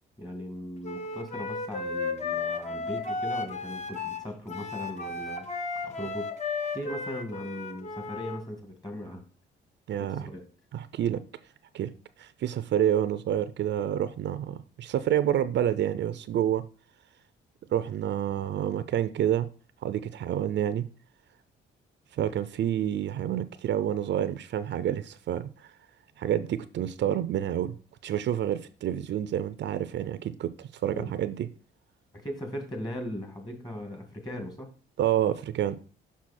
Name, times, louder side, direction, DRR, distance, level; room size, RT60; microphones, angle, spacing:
voice 1, 0.2-5.5 5.8-6.3 6.6-9.2 10.0-10.4 30.9-31.1 32.1-34.7, equal, 20° left, 2.1 m, -38 dB
Wind instrument woodwind instrument, 0.8-8.4, left 4 dB, 35° left, 1.2 m, -34 dB
voice 2, 9.9-10.3 10.7-11.2 11.7-11.9 12.2-16.6 17.7-19.5 19.8-20.9 22.1-25.7 26.2-27.7 28.0-31.5 35.0-35.7, right 10 dB, 65° right, 0.5 m, -28 dB
6.2 x 5.7 x 4.3 m
cardioid pair, 90°, 20 cm